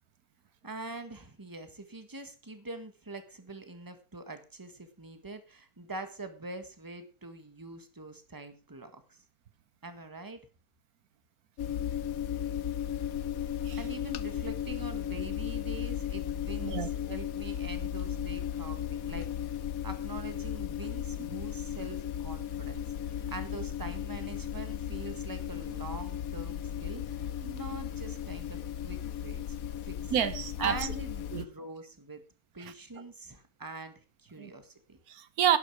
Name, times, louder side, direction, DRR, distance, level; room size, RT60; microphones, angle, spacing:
voice 1, 0.6-9.2 9.8-10.4 13.8-28.6 28.8-30.1 30.6-32.2 32.5-35.0, right 2 dB, 15° right, 1.5 m, -44 dB
sound 1, 11.6-31.4, left 10 dB, 75° left, 1.2 m, -35 dB
voice 2, 30.1-30.8 31.3-31.4 32.6-32.7 34.4-34.5 35.1-35.6, right 9 dB, 85° right, 1.4 m, -28 dB
11.5 x 11.0 x 4.7 m
omnidirectional pair, 1.5 m